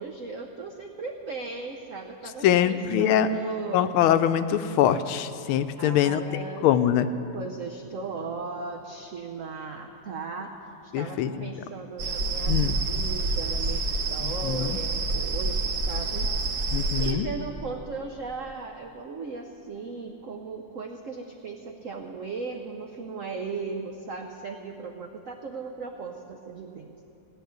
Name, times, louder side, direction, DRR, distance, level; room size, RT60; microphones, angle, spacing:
voice 1, 0.0-3.9 5.8-6.7 7.3-10.5 10.8-16.3 16.6-16.7 17.0-27.0, right 4 dB, 85° right, 3 dB, 0.7 m, -37 dB
voice 2, 2.4-3.3 3.7-6.2 6.6-7.1 10.9-11.5 12.5-12.8 14.2-14.8 16.7-17.3, left 10 dB, 80° left, 11 dB, 1.4 m, -23 dB
sound 1, 12.0-17.1, right 2 dB, 50° right, 1.1 m, -28 dB
16.5 x 6.3 x 9.3 m, 2.9 s
omnidirectional pair, 2.4 m